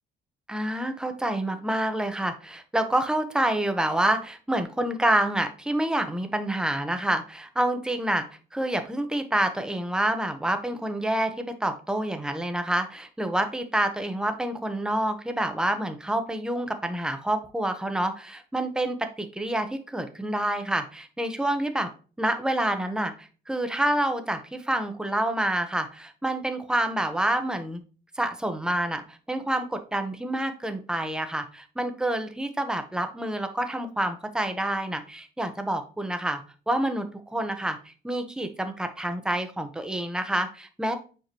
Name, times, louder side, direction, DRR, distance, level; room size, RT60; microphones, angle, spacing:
voice 1, 0.5-8.3 8.5-21.9 22.2-27.8 28.1-41.0, right 1 dB, 5° right, 7 dB, 1.0 m, -28 dB
6.8 x 4.7 x 3.0 m, 0.36 s
cardioid pair, 90°, 20 cm